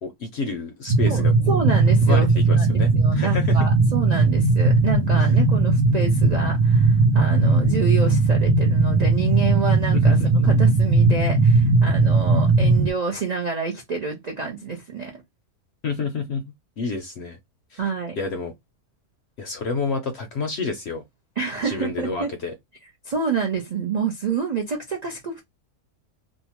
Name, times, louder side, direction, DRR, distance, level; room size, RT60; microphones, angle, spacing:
voice 1, 0.0-1.6 2.0-3.6 5.2-5.3 9.9-10.6 15.8-16.4 16.8-17.4 17.7-17.8 18.1-18.5 19.4-21.0 21.6-22.5, left 4 dB, 65° left, 0.7 m, -29 dB
sound 1, 0.9-12.9, right 3 dB, 80° right, 1.1 m, -18 dB
voice 2, 1.0-2.3 2.6-10.2 10.4-15.1 17.8-18.2 21.4-22.3 23.0-25.4, right 5 dB, 60° right, 0.4 m, -28 dB
2.8 x 2.1 x 2.8 m
omnidirectional pair, 1.5 m